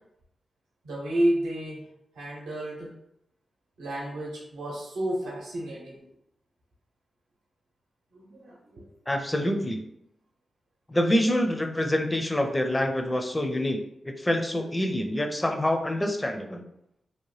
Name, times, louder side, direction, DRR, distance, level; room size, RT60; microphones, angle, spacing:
voice 1, 0.8-1.8 2.1-2.9 3.8-6.0 8.1-8.8, right 1 dB, 90° right, -4 dB, 0.7 m, -31 dB
voice 2, 9.1-9.8 10.9-13.8 14.0-16.6, left 1 dB, 20° left, 4 dB, 0.5 m, -26 dB
2.8 x 2.1 x 3.1 m, 0.78 s
supercardioid pair, 40°, 0 cm